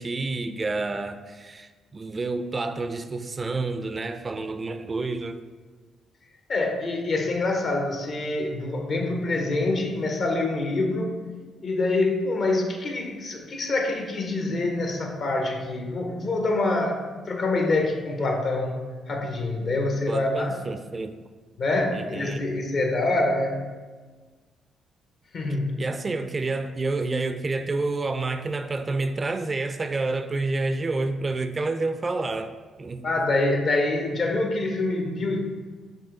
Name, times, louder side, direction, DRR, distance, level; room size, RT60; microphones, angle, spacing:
voice 1, 0.0-5.4 20.1-21.2 21.9-22.5 25.8-32.5 32.8-33.0, right 3 dB, 30° right, 9 dB, 0.3 m, -29 dB
voice 2, 6.5-11.1 11.6-17.0 17.3-20.5 21.6-23.7 25.3-25.8 33.0-35.4, left 2 dB, 55° left, 2 dB, 0.7 m, -26 dB
6.3 x 2.3 x 3.7 m, 1.4 s
cardioid pair, 90°, 0 cm